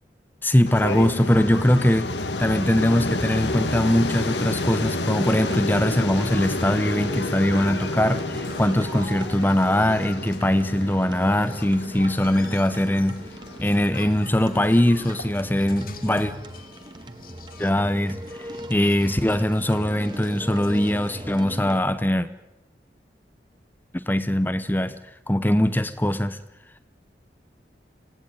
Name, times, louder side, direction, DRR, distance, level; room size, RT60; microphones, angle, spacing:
voice 1, 0.4-13.2 13.6-16.3 17.6-22.3 23.9-25.0 25.3-26.4, left 1 dB, 10° left, 11 dB, 0.8 m, -22 dB
sound 1, 0.7-15.3, left 2 dB, 80° left, 2.0 m, -30 dB
Indian nightmare, 3.5-21.8, right 1 dB, 25° right, 1.6 m, -39 dB
sound 2, 8.0-21.4, left 3 dB, 50° left, 2.1 m, -47 dB
26.5 x 17.0 x 8.9 m, 0.92 s
head